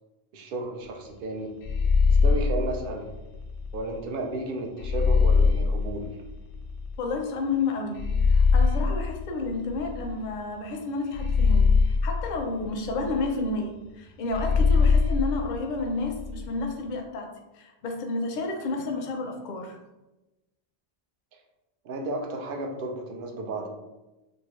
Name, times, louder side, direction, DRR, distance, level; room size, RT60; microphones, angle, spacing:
voice 1, 0.3-1.5 2.1-3.1 3.7-6.2 21.8-23.7, right 2 dB, 65° right, 2 dB, 0.7 m, -33 dB
sound 1, 1.6-3.8 4.8-7.0 8.0-10.3 11.1-13.3 14.3-16.5, left 4 dB, 85° left, 0.8 m, -23 dB
voice 2, 7.0-8.0 8.3-11.7 12.0-17.3 17.5-19.8, left 3 dB, 55° left, 2 dB, 0.6 m, -31 dB
2.7 x 2.5 x 3.0 m, 1.0 s
omnidirectional pair, 1.1 m